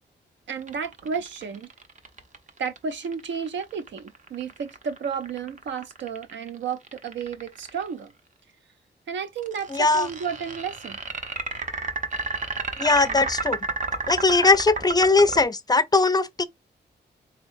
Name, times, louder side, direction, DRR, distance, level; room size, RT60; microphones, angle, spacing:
voice 1, 0.5-1.7 2.6-8.1 9.1-11.0, right 6 dB, 85° right, 0.6 m, -32 dB
sound 1, 0.6-7.9 9.4-15.4, right 3 dB, 45° right, 0.7 m, -32 dB
voice 2, 9.7-10.1 12.8-13.6 14.1-16.4, left 3 dB, 20° left, 0.4 m, -20 dB
4.0 x 3.0 x 2.6 m
wide cardioid pair, 115°, 18 cm